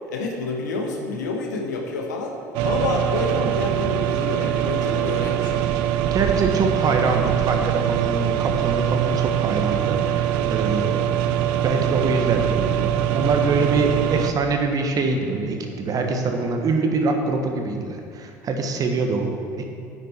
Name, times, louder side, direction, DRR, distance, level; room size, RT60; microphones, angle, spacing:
voice 1, 0.0-2.4 2.6-5.8, left 3 dB, 75° left, 2 dB, 1.4 m, -28 dB
sound 1, 2.5-14.3, right 10 dB, 60° right, 0.6 m, -23 dB
voice 2, 6.0-11.1 11.6-19.7, right 3 dB, 40° right, 4 dB, 1.4 m, -24 dB
9.9 x 9.3 x 4.5 m, 2.5 s
figure-of-eight pair, 65°, 10 cm